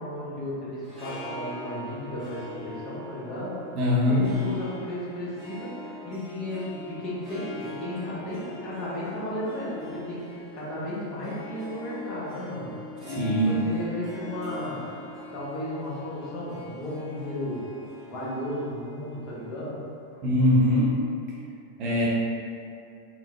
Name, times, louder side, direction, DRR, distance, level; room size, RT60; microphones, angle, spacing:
voice 1, 0.0-3.5 4.1-12.7 13.1-14.8 15.3-17.7 18.1-19.8, left 1 dB, 35° left, -8 dB, 1.0 m, -34 dB
Harp, 0.7-20.1, left 1 dB, 15° left, 1.2 m, -42 dB
voice 2, 3.8-4.2 13.1-13.6 20.2-21.0 21.8-22.1, left 1 dB, 35° right, -6 dB, 0.7 m, -22 dB
4.0 x 2.1 x 2.8 m, 2.6 s
figure-of-eight pair, 90°, 0 cm